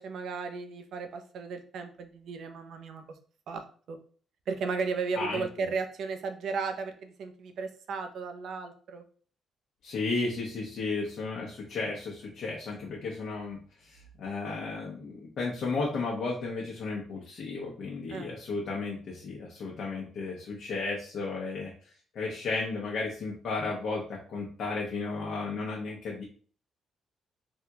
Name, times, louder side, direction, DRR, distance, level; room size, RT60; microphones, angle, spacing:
voice 1, 0.0-3.0 3.5-3.6 3.9-4.0 4.5-9.0 18.1-18.3, right 4 dB, 70° right, 7 dB, 0.5 m, -35 dB
voice 2, 5.1-5.7 9.8-21.7 22.1-26.2, left 3 dB, 65° left, -3 dB, 0.8 m, -34 dB
3.5 x 2.3 x 2.8 m, 0.43 s
cardioid pair, 90°, 0 cm